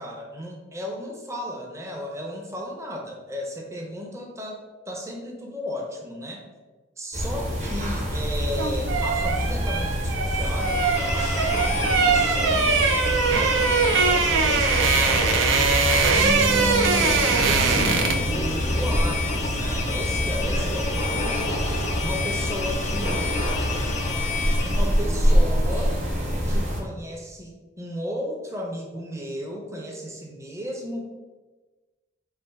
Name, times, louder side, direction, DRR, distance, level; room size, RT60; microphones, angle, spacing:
voice 1, 0.0-6.4 7.0-13.0 13.6-15.5 16.1-21.6 22.0-23.3 24.6-26.0 26.4-31.0, equal, 15° right, 0 dB, 0.6 m, -34 dB
sound 1, 7.1-26.8, equal, 35° right, 0.9 m, -26 dB
sound 2, 8.3-18.3 18.6-18.8, right 5 dB, 80° right, 0.4 m, -22 dB
sound 3, 10.3-25.1, left 5 dB, 35° left, 0.4 m, -31 dB
3.3 x 2.6 x 4.5 m, 1.2 s
head